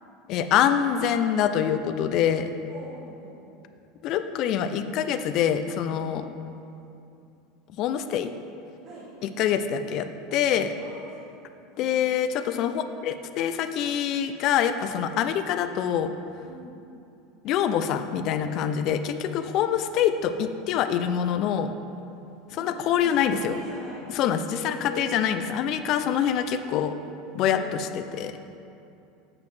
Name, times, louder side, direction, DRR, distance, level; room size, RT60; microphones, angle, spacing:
voice 1, 0.3-2.5 4.0-6.3 7.8-8.3 9.2-10.7 11.8-16.1 17.4-21.7 22.5-23.6 24.1-27.0 27.3-28.3, left 9 dB, 35° left, 9 dB, 0.3 m, -25 dB
voice 2, 2.7-3.4 8.8-9.0 10.8-12.1 16.4-16.9 22.5-24.2 24.5-25.3 27.5-28.2, left 1 dB, 35° right, -8 dB, 1.3 m, -42 dB
8.4 x 6.3 x 3.2 m, 2.7 s
supercardioid pair, 175°, 0 cm